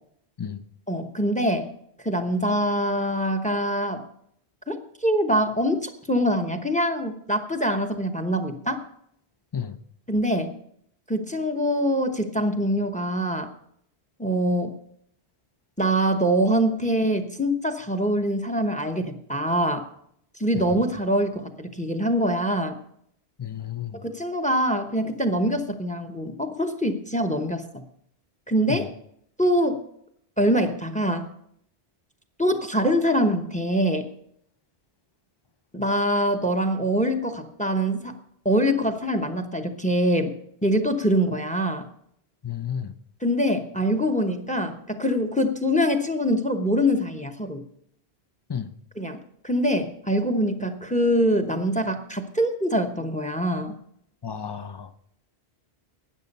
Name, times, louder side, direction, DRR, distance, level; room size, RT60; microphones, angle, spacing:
voice 1, 0.9-1.7 2.0-4.0 4.7-8.8 10.1-10.5 11.1-13.5 14.2-14.7 15.8-19.9 20.4-22.7 24.0-27.8 28.5-28.9 29.4-29.8 30.4-31.3 32.4-34.1 35.7-38.1 38.4-40.3 40.6-41.9 43.2-47.6 49.0-49.2 49.4-53.7, equal, 10° left, 0.8 m, -24 dB
voice 2, 23.4-24.0 28.7-28.9 42.4-42.9 48.5-48.7 54.2-54.9, left 8 dB, 30° left, 0.5 m, -32 dB
12.5 x 9.2 x 5.4 m
omnidirectional pair, 1.1 m